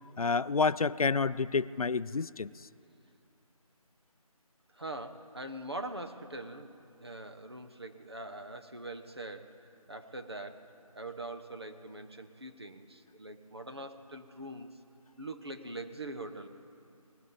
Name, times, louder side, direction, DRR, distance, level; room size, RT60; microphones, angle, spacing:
voice 1, 0.2-2.5, left 4 dB, 70° left, 17 dB, 0.5 m, -29 dB
voice 2, 4.7-14.7 15.2-16.5, right 2 dB, 45° right, 6 dB, 1.1 m, -43 dB
19.5 x 16.0 x 4.0 m, 2.5 s
figure-of-eight pair, 180°, 19 cm